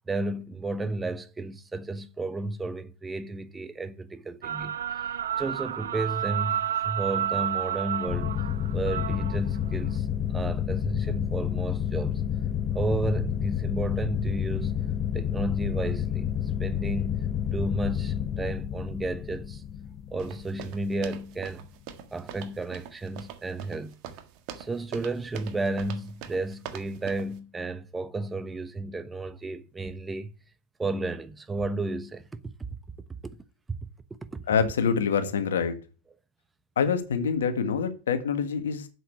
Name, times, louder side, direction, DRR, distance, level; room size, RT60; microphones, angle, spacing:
voice 1, 0.1-4.8 5.4-8.4 8.7-12.2 12.7-14.8 15.1-16.3 16.6-19.6 20.1-21.7 22.1-24.0 24.5-30.3 30.8-32.7 33.7-33.9 34.3-34.4, right 2 dB, 15° right, 1.0 m, -32 dB
sound 1, 4.4-10.0, right 10 dB, 75° right, 0.5 m, -31 dB
sound 2, 8.1-21.3, left 9 dB, 35° left, 1.0 m, -30 dB
sound 3, 20.2-27.3, right 9 dB, 50° right, 1.6 m, -43 dB
voice 2, 34.5-35.8 36.8-38.9, left 6 dB, 80° left, 1.8 m, -26 dB
7.7 x 6.5 x 8.1 m
hypercardioid pair, 95°, 0 cm